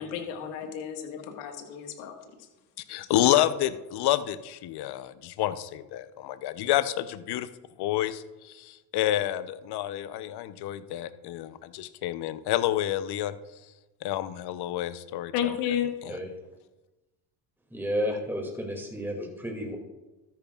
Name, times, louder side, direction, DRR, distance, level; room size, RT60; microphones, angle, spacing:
voice 1, 0.0-2.1 15.3-15.9, left 9 dB, 75° left, 4 dB, 1.8 m, -31 dB
voice 2, 2.9-7.5 7.8-8.2 8.6-13.3 14.0-15.5 16.0-16.1, left 13 dB, 55° left, 13 dB, 0.8 m, -28 dB
voice 3, 17.7-19.8, equal, 5° right, 2 dB, 2.5 m, -32 dB
13.0 x 10.0 x 2.4 m, 1.1 s
hypercardioid pair, 65°, 46 cm